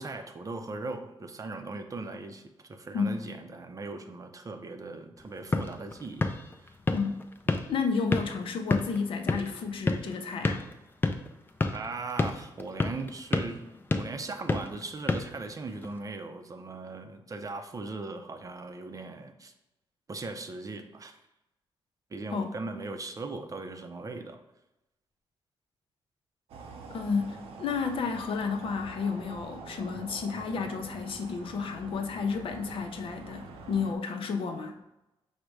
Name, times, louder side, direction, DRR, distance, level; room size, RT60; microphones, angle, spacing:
voice 1, 0.0-6.7 11.7-13.6 13.9-19.5 20.1-21.2 22.1-24.4, right 3 dB, 35° right, 6 dB, 0.5 m, -39 dB
sound 1, 5.2-16.0, left 3 dB, 20° left, 0.5 m, -32 dB
voice 2, 6.9-7.2 7.7-10.6 22.3-22.5 26.9-34.7, left 5 dB, 70° left, 5 dB, 0.6 m, -31 dB
sound 2, 26.5-34.0, right 3 dB, 90° right, 0.6 m, -46 dB
5.0 x 2.1 x 4.6 m, 0.94 s
cardioid pair, 75°, 10 cm